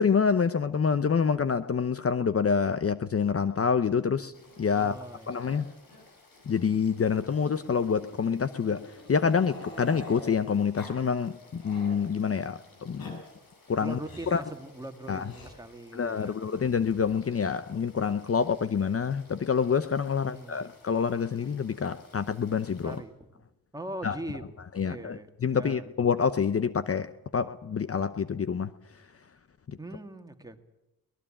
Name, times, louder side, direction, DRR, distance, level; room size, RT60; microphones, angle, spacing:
voice 1, 0.0-4.3 4.6-5.0 5.3-5.7 6.5-13.2 13.7-14.0 14.3-14.4 15.1-15.3 15.9-23.0 24.0-24.2 24.8-28.7 29.7-29.8, left 6 dB, 40° left, 0.8 m, -27 dB
Growling, 3.3-5.2 5.4-5.6 5.9-6.0 6.4-6.5 7.5-10.3 10.7-11.0 11.3-12.0 12.7-13.1 14.0-14.5 15.2-15.5 16.7-17.3, left 1 dB, 90° left, 6.7 m, -47 dB
Frog / Stream, 4.3-23.0, left 3 dB, 70° left, 6.6 m, -58 dB
voice 2, 4.7-5.4 13.7-16.7 20.2-20.6 22.8-23.1 23.7-25.9 29.8-30.6, right 1 dB, 10° right, 2.2 m, -41 dB
24.0 x 19.0 x 8.9 m
wide cardioid pair, 95°, 35 cm